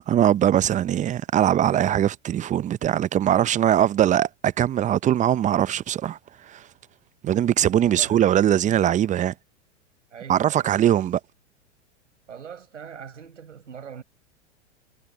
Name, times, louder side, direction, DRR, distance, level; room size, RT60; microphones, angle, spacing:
voice 1, 0.1-6.2 6.5-6.6 7.2-9.3 10.3-11.2, right 11 dB, 20° right, 0.6 m, -21 dB
voice 2, 7.7-8.4 10.1-11.0 12.3-14.0, right 7 dB, 90° right, 6.1 m, -42 dB
hypercardioid pair, 105°, 36 cm